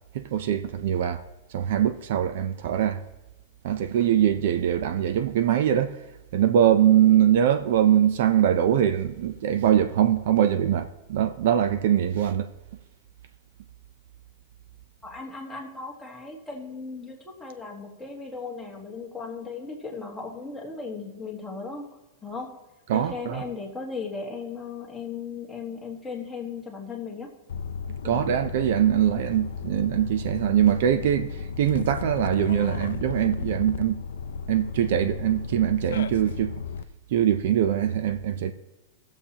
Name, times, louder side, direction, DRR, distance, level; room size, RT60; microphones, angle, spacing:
voice 1, 0.1-1.2 1.5-3.0 3.6-6.0 6.3-12.5 22.9-23.4 28.0-34.0 34.5-36.5 37.1-38.5, right 10 dB, 55° right, 0.5 m, -22 dB
voice 2, 15.0-21.9 22.2-22.6 22.9-27.3 28.0-28.3, left 4 dB, 5° left, 1.4 m, -37 dB
sound 1, 27.5-36.8, left 6 dB, 90° left, 0.5 m, -34 dB
18.0 x 7.1 x 2.9 m
supercardioid pair, 170°, 0 cm